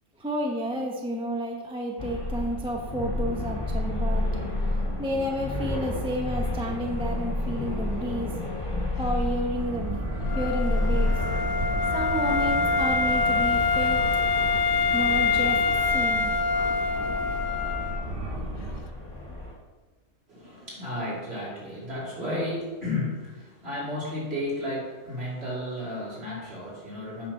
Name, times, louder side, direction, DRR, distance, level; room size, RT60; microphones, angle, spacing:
voice 1, 0.2-4.3 5.0-8.4 9.0-10.0 10.3-11.2 11.9-14.0 14.9-16.3, equal, 5° right, 1 dB, 0.6 m, -31 dB
sound 1, 2.0-19.5, left 1 dB, 20° left, 2.0 m, -31 dB
sound 2, 9.6-18.8, right 1 dB, 30° right, 0.9 m, -34 dB
Wind instrument woodwind instrument, 10.2-18.0, left 5 dB, 75° left, 1.1 m, -25 dB
voice 2, 20.3-27.3, left 1 dB, 45° right, -7 dB, 3.3 m, -33 dB
8.6 x 4.1 x 5.9 m, 1.3 s
omnidirectional pair, 1.5 m